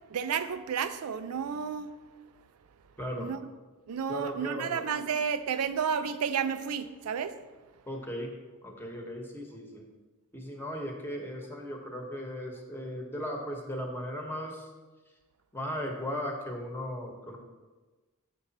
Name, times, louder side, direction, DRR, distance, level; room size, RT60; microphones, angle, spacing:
voice 1, 0.1-1.9 3.2-3.4 3.9-7.4, right 7 dB, 85° right, 0.4 m, -31 dB
voice 2, 3.0-3.3 4.1-4.8 7.9-8.3 8.6-9.9 10.3-14.7 15.5-17.4, equal, 10° left, 1.1 m, -37 dB
7.0 x 6.6 x 4.1 m
head